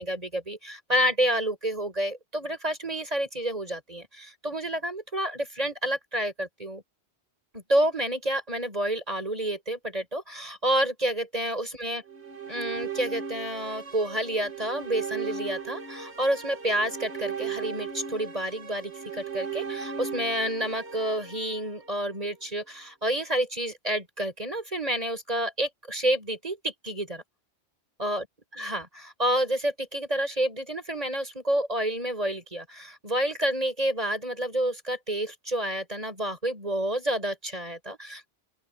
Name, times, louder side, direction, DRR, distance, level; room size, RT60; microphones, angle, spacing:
voice 1, 0.0-6.8 7.5-12.0 12.5-27.2 28.0-28.3 28.5-38.3, right 1 dB, 35° right, 6.1 m, -29 dB
sound 1, 12.1-22.3, right 6 dB, 90° right, 2.1 m, -37 dB
open air
omnidirectional pair, 1.1 m